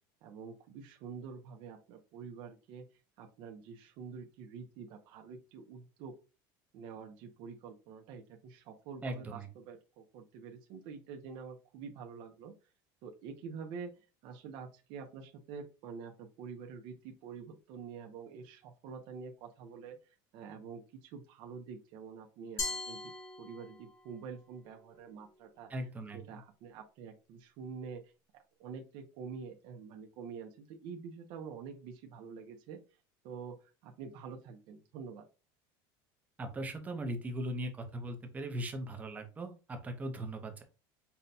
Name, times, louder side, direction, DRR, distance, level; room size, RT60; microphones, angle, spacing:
voice 1, 0.2-2.9 3.2-6.1 6.7-12.5 13.0-23.1 23.4-25.7 26.1-28.1 28.6-32.8 33.2-35.2, right 6 dB, 55° right, 2 dB, 0.6 m, -47 dB
voice 2, 9.0-9.5 25.7-26.2 36.4-40.6, right 1 dB, 15° right, 5 dB, 0.6 m, -39 dB
Glass, 22.6-24.0, left 3 dB, 30° left, 1.0 m, -39 dB
5.5 x 2.2 x 2.6 m, 0.32 s
cardioid pair, 160°, 10 cm